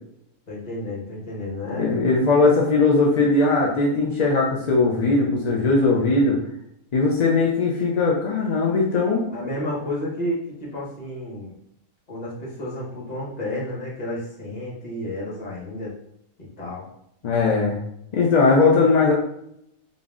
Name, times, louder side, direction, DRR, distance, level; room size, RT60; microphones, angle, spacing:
voice 1, 0.5-2.1 9.3-11.5 12.1-15.9 16.4-16.8, left 1 dB, 35° left, -5 dB, 1.1 m, -31 dB
voice 2, 1.8-6.4 6.9-9.2 17.2-17.8 18.1-19.1, left 3 dB, 50° left, -2 dB, 0.5 m, -19 dB
4.0 x 2.3 x 3.6 m, 0.75 s
omnidirectional pair, 1.4 m